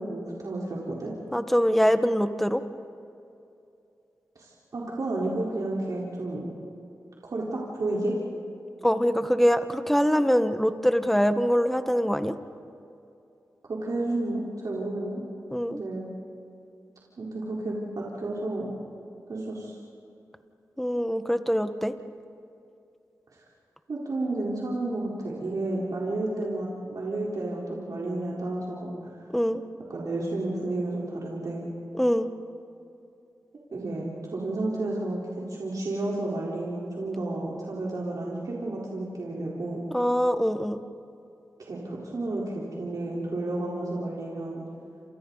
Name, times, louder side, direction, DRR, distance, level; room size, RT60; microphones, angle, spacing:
voice 1, 0.0-1.1 4.4-6.5 7.2-8.1 13.6-15.2 15.7-16.1 17.2-18.7 19.3-19.7 23.3-23.4 23.9-29.1 29.9-31.7 33.7-39.8 41.6-44.6, right 2 dB, 70° right, -5 dB, 4.2 m, -31 dB
voice 2, 1.3-2.6 8.8-12.3 15.5-15.8 20.8-21.9 29.3-29.6 31.9-32.3 39.9-40.8, equal, 5° left, 9 dB, 1.5 m, -23 dB
28.5 x 28.5 x 4.1 m, 2.6 s
cardioid pair, 50°, 6 cm